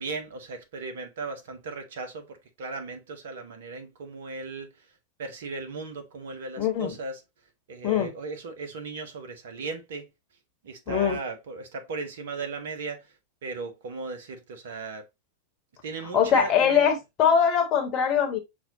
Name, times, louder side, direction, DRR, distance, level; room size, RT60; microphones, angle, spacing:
voice 1, 0.0-4.9 5.2-7.2 7.7-10.1 10.6-13.1 13.4-15.1 15.8-16.9, right 4 dB, 60° right, 0.8 m, -37 dB
voice 2, 6.6-7.0 7.8-8.1 10.9-11.2 16.1-18.4, left 8 dB, 35° left, 1.0 m, -22 dB
5.7 x 2.3 x 2.8 m
figure-of-eight pair, 90°, 0 cm